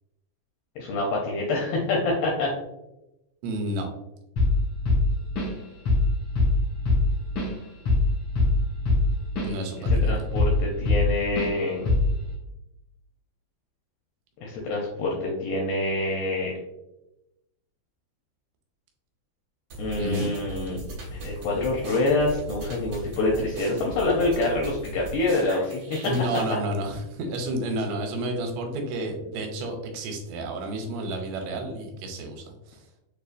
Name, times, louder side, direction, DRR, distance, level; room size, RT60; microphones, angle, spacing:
voice 1, 0.8-2.5 10.0-12.0 14.4-16.5 19.8-20.8 21.1-25.8, left 2 dB, 80° left, -2 dB, 2.2 m, -26 dB
voice 2, 3.4-3.9 9.4-10.3 20.0-20.3 26.0-32.8, right 1 dB, 85° right, 3 dB, 2.8 m, -31 dB
Drum kit / Drum, 4.4-4.6 4.9-5.6 5.9-6.1 6.4-9.5 9.9-11.1 11.4-11.5 11.9-12.2, left 2 dB, 65° left, 1.4 m, -22 dB
sound 1, 19.7-26.5, right 1 dB, 65° right, 1.9 m, -38 dB
6.6 x 2.4 x 2.5 m, 0.92 s
omnidirectional pair, 5.0 m